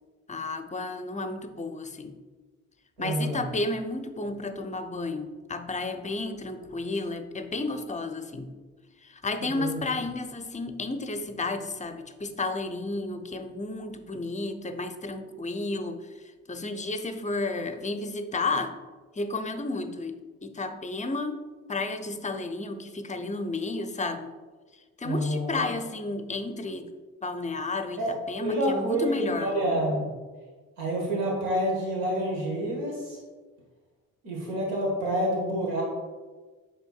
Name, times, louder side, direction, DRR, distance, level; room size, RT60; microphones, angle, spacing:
voice 1, 0.3-2.2 3.0-8.5 9.0-16.0 16.5-18.7 19.1-21.4 21.7-24.3 25.0-26.9 27.2-29.6, left 3 dB, 15° left, 8 dB, 0.6 m, -32 dB
voice 2, 3.0-3.4 9.4-9.8 25.0-25.7 28.0-28.1 28.4-30.1 30.8-33.2 34.2-35.8, right 1 dB, 75° right, -2 dB, 1.5 m, -28 dB
7.9 x 5.9 x 2.4 m, 1.4 s
figure-of-eight pair, 45°, 42 cm